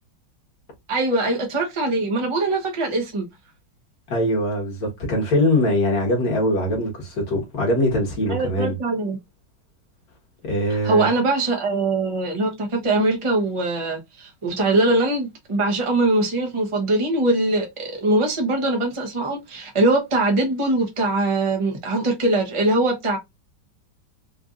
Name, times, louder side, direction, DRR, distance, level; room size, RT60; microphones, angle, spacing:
voice 1, 0.9-3.3 8.3-9.2 10.7-23.2, right 2 dB, 40° right, 0.4 m, -22 dB
voice 2, 4.1-8.7 10.4-11.1, left 1 dB, 50° left, 1.9 m, -22 dB
4.5 x 2.5 x 2.4 m
omnidirectional pair, 2.2 m